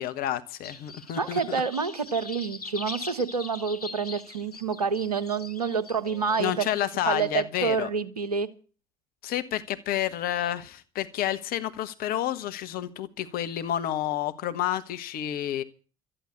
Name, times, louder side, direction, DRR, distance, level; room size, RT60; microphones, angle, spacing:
voice 1, 0.0-1.6 6.4-7.9 9.2-15.6, left 12 dB, 50° left, 12 dB, 1.2 m, -30 dB
sound 1, 0.6-7.1, left 3 dB, 90° left, 1.3 m, -42 dB
voice 2, 1.1-6.7 7.0-8.5, right 5 dB, 85° right, 14 dB, 1.2 m, -28 dB
13.5 x 10.0 x 8.3 m, 0.37 s
figure-of-eight pair, 60°, 19 cm